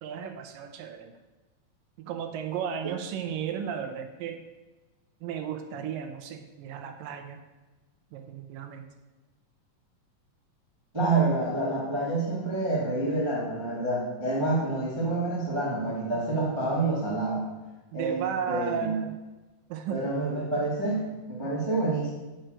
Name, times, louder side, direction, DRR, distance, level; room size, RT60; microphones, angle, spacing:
voice 1, 0.0-1.2 2.1-4.4 5.2-7.4 8.1-8.9 17.9-19.1 19.7-20.2, right 8 dB, 80° right, 6 dB, 2.3 m, -34 dB
voice 2, 10.9-17.5 17.9-18.2 18.5-19.0 19.9-22.1, right 2 dB, 10° right, -6 dB, 1.2 m, -28 dB
9.1 x 4.5 x 6.4 m, 1.2 s
omnidirectional pair, 4.1 m